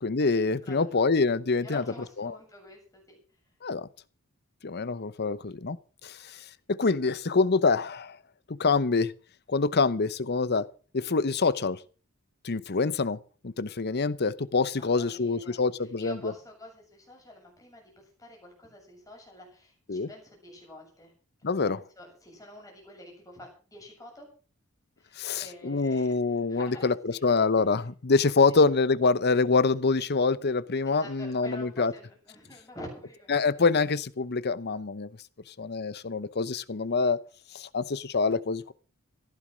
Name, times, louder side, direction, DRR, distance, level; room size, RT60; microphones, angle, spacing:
voice 1, 0.0-1.8 2.2-2.3 3.6-3.9 4.6-5.8 6.0-8.2 8.5-9.1 9.5-10.7 10.9-11.8 12.4-13.2 13.4-16.2 19.9-20.1 21.4-21.8 25.2-31.9 33.3-35.1 35.6-37.2 37.5-38.7, left 4 dB, 50° left, 0.8 m, -26 dB
voice 2, 1.6-3.2 14.7-21.1 21.4-24.3 25.0-26.9 28.5-28.7 30.9-33.7, left 1 dB, 15° left, 7.3 m, -47 dB
15.5 x 10.5 x 6.3 m
head